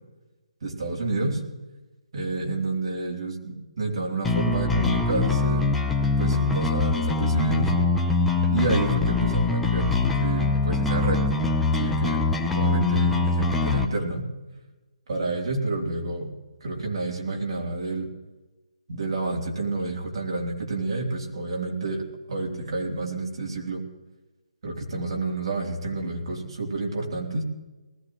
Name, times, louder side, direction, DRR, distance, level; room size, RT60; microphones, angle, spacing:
voice 1, 0.6-1.4 2.1-5.7 6.2-7.7 8.5-11.2 11.8-12.3 12.5-14.3 15.1-16.3 16.6-18.1 18.9-23.8 24.6-27.4, right 2 dB, 50° right, -1 dB, 3.5 m, -29 dB
sound 1, 4.2-13.8, left 3 dB, 5° left, 0.7 m, -23 dB
20.0 x 15.5 x 3.2 m, 1.1 s
hypercardioid pair, 170°, 4 cm